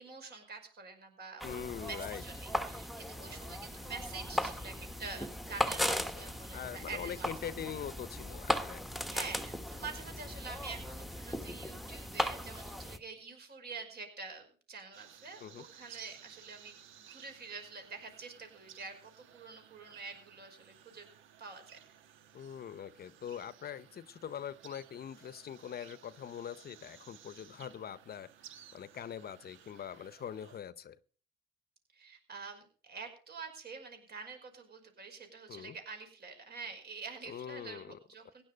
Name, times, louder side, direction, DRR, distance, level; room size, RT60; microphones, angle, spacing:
voice 1, 0.0-7.3 7.7-7.8 9.1-21.1 21.4-21.8 31.9-38.4, right 4 dB, 55° right, 5 dB, 5.4 m, -47 dB
voice 2, 1.4-2.2 6.1-6.2 6.5-8.8 15.4-15.6 22.3-28.3 28.7-31.0 35.5-35.7 37.3-38.0, left 9 dB, 50° left, 16 dB, 0.7 m, -43 dB
sound 1, 1.4-13.0, left 1 dB, ahead, 1.1 m, -37 dB
sound 2, 14.9-30.6, right 9 dB, 80° right, 1.3 m, -57 dB
16.5 x 10.0 x 5.1 m, 0.41 s
cardioid pair, 90°, 20 cm